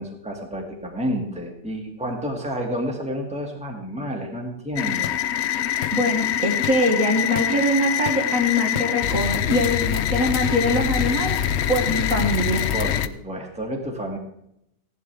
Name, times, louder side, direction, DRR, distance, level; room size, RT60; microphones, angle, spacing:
voice 1, 0.0-5.1 12.7-14.2, equal, 5° right, 1 dB, 2.0 m, -30 dB
sound 1, 4.8-13.1, left 10 dB, 75° left, 0.6 m, -24 dB
voice 2, 5.9-11.3 11.7-12.7, left 1 dB, 50° right, 1 dB, 2.1 m, -23 dB
16.5 x 11.5 x 3.5 m, 0.76 s
omnidirectional pair, 1.8 m